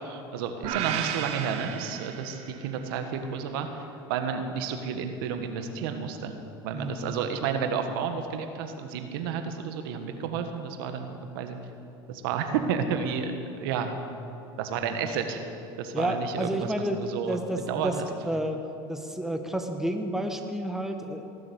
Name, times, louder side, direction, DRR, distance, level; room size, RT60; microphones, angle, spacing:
voice 1, 0.0-6.4 6.6-11.6 12.1-13.3 13.6-14.0 14.6-15.5 15.8-16.7 17.0-17.4 17.7-18.0, right 6 dB, 80° right, 7 dB, 1.3 m, -31 dB
sound 1, 0.6-2.8, right 9 dB, 65° right, 1.2 m, -33 dB
voice 2, 6.7-7.2 15.9-18.6 18.9-21.3, right 1 dB, 5° right, 5 dB, 1.5 m, -31 dB
18.5 x 7.7 x 8.0 m, 2.8 s
supercardioid pair, 90°, 12 cm